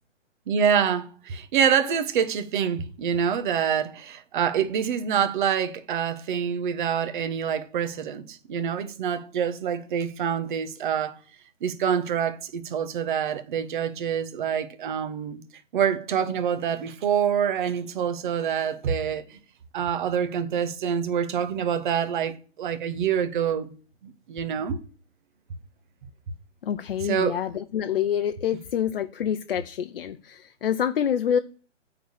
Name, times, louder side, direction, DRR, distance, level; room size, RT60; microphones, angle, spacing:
voice 1, 0.5-11.2 11.6-15.4 15.7-19.4 19.7-23.7 24.0-24.8 27.0-27.4, right 8 dB, 40° right, 1.2 m, -26 dB
voice 2, 26.6-31.4, left 9 dB, 50° left, 0.6 m, -27 dB
9.2 x 4.0 x 6.7 m
figure-of-eight pair, 135°, 36 cm